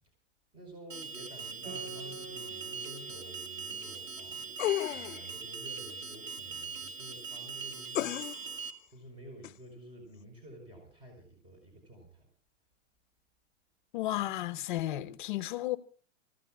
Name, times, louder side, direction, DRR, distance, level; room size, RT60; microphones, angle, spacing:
voice 1, 0.5-12.3, right 1 dB, 15° right, 4.7 m, -51 dB
Alarm, 0.9-8.7, right 5 dB, 85° right, 1.9 m, -41 dB
Guitar, 1.7-6.6, right 4 dB, 60° right, 7.9 m, -50 dB
sound 1, 4.6-5.3 7.9-8.5 9.4-9.5, left 14 dB, 85° left, 0.6 m, -32 dB
voice 2, 13.9-15.8, left 15 dB, 40° left, 1.0 m, -33 dB
30.0 x 15.5 x 2.3 m
hypercardioid pair, 165°, 37 cm